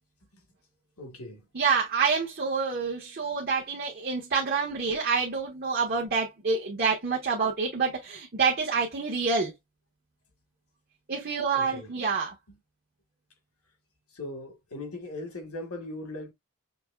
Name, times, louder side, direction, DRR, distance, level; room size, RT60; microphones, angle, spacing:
voice 1, 1.0-1.4 11.5-11.9 14.1-16.3, left 2 dB, 90° left, 1.5 m, -39 dB
voice 2, 1.5-9.5 11.1-12.3, right 5 dB, 45° right, 1.1 m, -27 dB
6.0 x 2.9 x 2.3 m
head